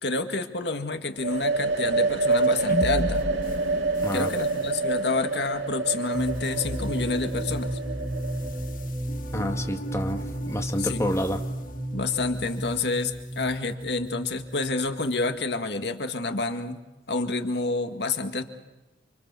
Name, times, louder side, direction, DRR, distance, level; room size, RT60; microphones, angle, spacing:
voice 1, 0.0-3.2 4.1-7.8 10.8-11.0 11.9-16.8 17.1-18.4, left 3 dB, 65° left, 6 dB, 2.0 m, -28 dB
sound 1, 1.2-8.8, right 3 dB, 85° right, 2.3 m, -27 dB
sound 2, 2.3-12.8, left 1 dB, 50° left, 1.5 m, -37 dB
sound 3, 6.1-15.8, right 1 dB, 15° right, 0.8 m, -34 dB
voice 2, 9.3-11.4, equal, 15° left, 4 dB, 1.9 m, -29 dB
29.5 x 25.5 x 7.0 m, 1.1 s
head